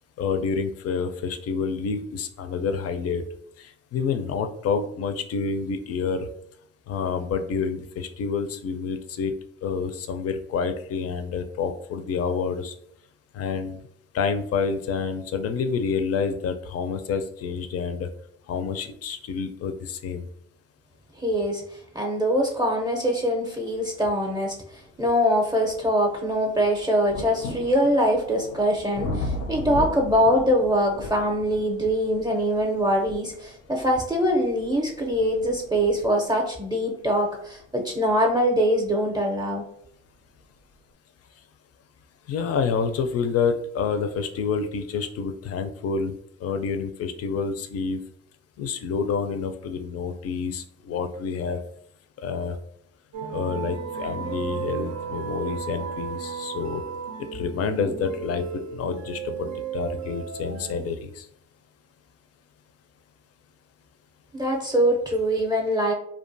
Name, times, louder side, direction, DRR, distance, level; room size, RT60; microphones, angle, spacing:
voice 1, 0.2-3.2 3.6-6.3 6.9-9.3 9.6-12.7 13.3-13.8 14.1-18.1 18.5-20.3 42.3-46.1 46.4-48.0 48.6-51.6 52.2-52.6 53.3-56.8 57.3-58.4 58.7-61.2, left 5 dB, 50° left, 7 dB, 0.4 m, -28 dB
voice 2, 21.2-21.6 21.9-24.6 25.0-39.6 64.3-65.9, equal, 15° right, 0 dB, 0.5 m, -23 dB
sound 1, 24.2-24.3 24.9-39.5 40.4-40.5, left 2 dB, 90° left, 0.6 m, -38 dB
sound 2, 53.1-60.8, right 7 dB, 70° right, 0.5 m, -34 dB
2.4 x 2.2 x 2.5 m, 0.69 s
supercardioid pair, 50°, 31 cm